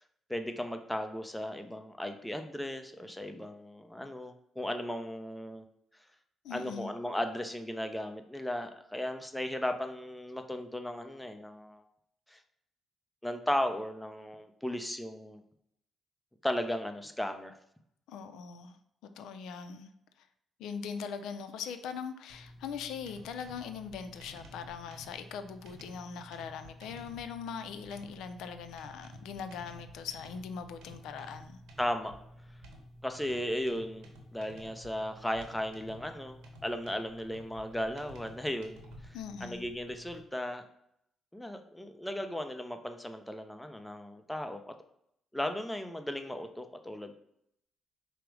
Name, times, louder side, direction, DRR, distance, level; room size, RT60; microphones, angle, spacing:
voice 1, 0.3-5.6 6.5-11.8 12.3-12.4 13.2-15.4 16.4-17.6 31.8-32.1 33.0-40.6 41.3-44.7 45.3-47.1, left 1 dB, 5° left, 0.5 m, -36 dB
voice 2, 6.4-6.9 18.1-18.8 19.0-19.9 20.2-20.3 20.6-31.6 39.1-39.7, left 6 dB, 85° left, 0.3 m, -41 dB
sound 1, 22.3-40.2, equal, 90° right, 0.9 m, -52 dB
4.7 x 2.0 x 4.6 m
cardioid pair, 90°, 0 cm